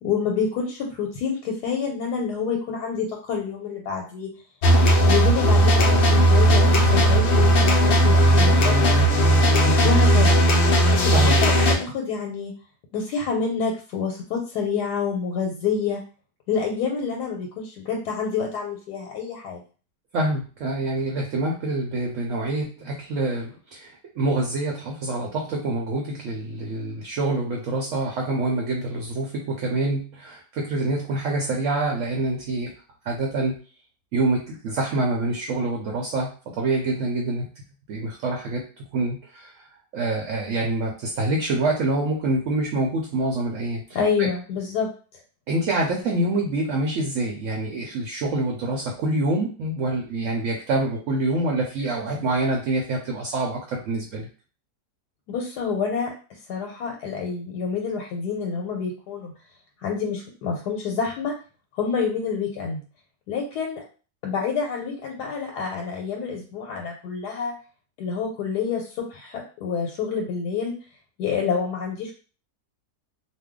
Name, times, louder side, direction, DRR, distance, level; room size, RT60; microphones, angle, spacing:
voice 1, 0.0-4.3 5.0-9.0 9.8-10.4 10.9-12.5 12.9-16.0 16.5-19.6 43.9-44.9 55.3-56.1 56.5-59.3 59.8-61.4 61.7-62.8 63.3-63.8 64.2-67.5 68.0-70.7 71.2-72.1, left 5 dB, 90° left, 0 dB, 1.2 m, -27 dB
sound 1, 4.6-11.7, right 1 dB, 65° left, 0.6 m, -17 dB
voice 2, 11.1-11.6 20.1-32.7 33.0-33.5 34.1-36.3 36.6-37.5 37.9-38.6 38.9-39.5 39.9-44.3 45.5-54.3, right 2 dB, 65° right, 0 dB, 0.8 m, -26 dB
2.6 x 2.2 x 3.6 m, 0.37 s
omnidirectional pair, 1.7 m